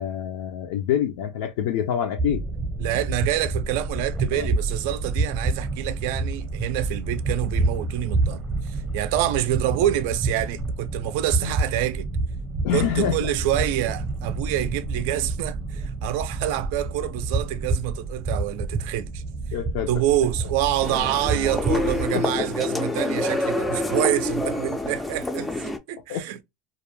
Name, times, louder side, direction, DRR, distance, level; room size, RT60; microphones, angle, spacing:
voice 1, 0.0-2.4 4.3-4.5 11.4-11.5 12.6-13.3 19.5-19.9 22.1-22.5 26.1-26.2, left 9 dB, 80° left, 0.4 m, -26 dB
sound 1, 2.2-22.1, right 3 dB, 25° right, 0.7 m, -28 dB
voice 2, 2.8-8.4 8.7-12.1 12.7-19.2 19.9-26.4, right 13 dB, 70° right, 0.4 m, -27 dB
sound 2, 20.8-25.8, left 2 dB, 10° left, 0.3 m, -27 dB
2.3 x 2.1 x 3.1 m
supercardioid pair, 145°, 0 cm